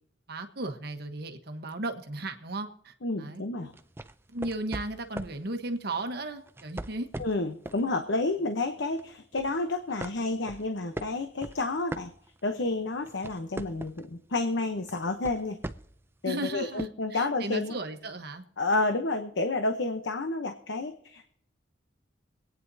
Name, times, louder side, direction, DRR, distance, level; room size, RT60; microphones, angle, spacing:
voice 1, 0.3-3.4 4.3-7.1 16.2-18.4, right 2 dB, 60° right, 6 dB, 1.2 m, -35 dB
voice 2, 3.0-3.7 7.2-12.1 12.4-15.6 16.2-17.8 18.6-21.3, left 2 dB, 75° left, 7 dB, 0.9 m, -30 dB
sound 1, 3.7-5.4 6.5-7.9 8.3-8.5 9.0-9.6 10.0-12.6 12.9-14.1 14.9-16.0 16.8-16.9, right 1 dB, 15° right, 0.5 m, -40 dB
25.0 x 9.4 x 2.7 m, 0.68 s
head